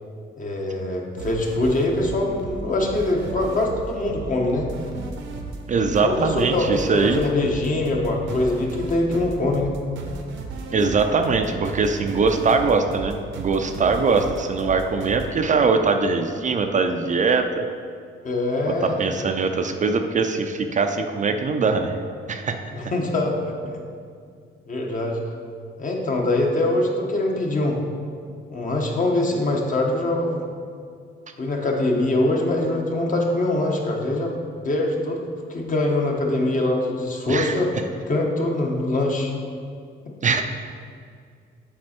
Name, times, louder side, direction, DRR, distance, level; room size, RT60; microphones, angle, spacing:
voice 1, 0.4-4.7 6.0-9.8 18.2-19.0 22.7-23.8 24.7-25.2 25.8-27.8 28.5-30.5 31.4-34.3 34.6-37.7 38.1-39.3, left 2 dB, 40° left, 0 dB, 1.2 m, -23 dB
sound 1, 1.2-15.3, right 3 dB, 75° right, 0.9 m, -35 dB
voice 2, 5.7-7.2 10.7-17.6 18.7-22.0 22.3-22.7 37.3-37.6 40.2-40.4, right 4 dB, 40° right, 6 dB, 0.5 m, -22 dB
7.5 x 4.3 x 4.4 m, 2.2 s
cardioid pair, 90°, 20 cm